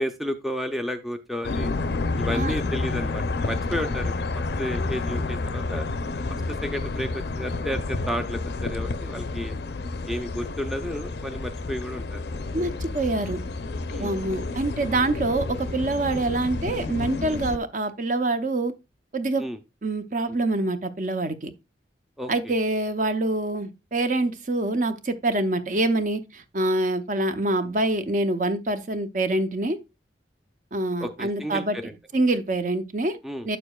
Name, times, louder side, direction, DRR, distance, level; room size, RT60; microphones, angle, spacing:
voice 1, 0.0-1.7 2.2-4.2 4.6-5.9 6.5-9.5 10.1-12.2 13.9-14.1 19.4-19.6 22.2-22.5 31.0-31.9 33.2-33.5, equal, ahead, 0.5 m, -32 dB
sound 1, 1.4-17.6, left 3 dB, 65° left, 0.5 m, -30 dB
voice 2, 12.5-13.4 14.0-18.7 19.1-19.5 19.8-21.5 22.3-29.8 30.7-31.8 32.1-33.2 33.4-33.6, right 2 dB, 45° right, 0.7 m, -25 dB
8.8 x 6.8 x 2.3 m
head